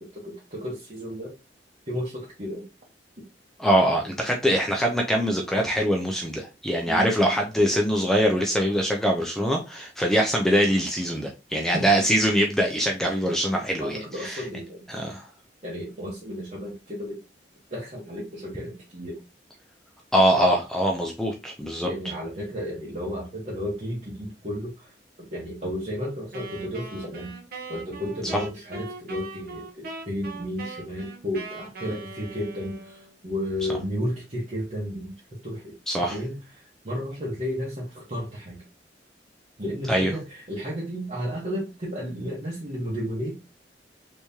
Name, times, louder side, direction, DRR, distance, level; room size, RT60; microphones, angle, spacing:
voice 1, 0.1-1.3 1.9-2.6 6.9-7.1 11.7-11.9 13.8-14.8 15.6-17.2 17.7-19.2 21.8-24.9 25.2-27.3 27.7-35.1 35.4-35.7 36.1-36.4 36.8-38.6 39.6-43.4, equal, 40° right, -5 dB, 1.1 m, -33 dB
voice 2, 3.6-14.5 14.9-15.2 20.1-21.9 28.3-28.4 35.9-36.2 39.9-40.1, equal, 5° left, 1 dB, 0.4 m, -23 dB
Wind instrument woodwind instrument, 26.3-33.2, right 2 dB, 55° right, 0.8 m, -40 dB
3.5 x 3.0 x 2.7 m, 0.28 s
head